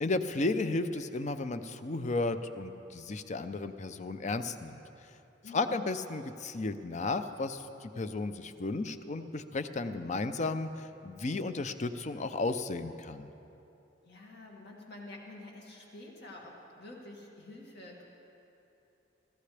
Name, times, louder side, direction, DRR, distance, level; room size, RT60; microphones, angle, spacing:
voice 1, 0.0-4.8 5.5-13.3, left 3 dB, 40° left, 10 dB, 0.5 m, -34 dB
voice 2, 5.4-5.9 14.0-18.0, left 2 dB, 60° left, -2 dB, 2.2 m, -48 dB
23.0 x 14.5 x 3.4 m, 2.9 s
head